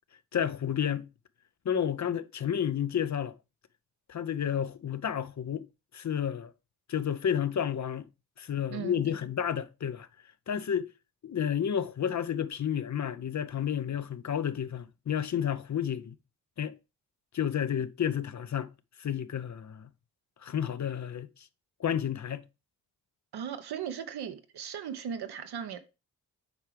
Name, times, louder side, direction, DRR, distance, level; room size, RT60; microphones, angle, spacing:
voice 1, 0.3-1.1 1.6-3.3 4.1-5.6 5.9-6.5 6.9-8.1 8.4-10.1 10.5-10.9 11.2-16.2 16.6-16.7 17.3-18.7 19.0-19.9 20.4-21.3 21.8-22.5, left 9 dB, 45° left, 0.6 m, -31 dB
voice 2, 23.3-25.8, right 8 dB, 70° right, 1.0 m, -37 dB
7.9 x 4.6 x 3.3 m
supercardioid pair, 40°, 40 cm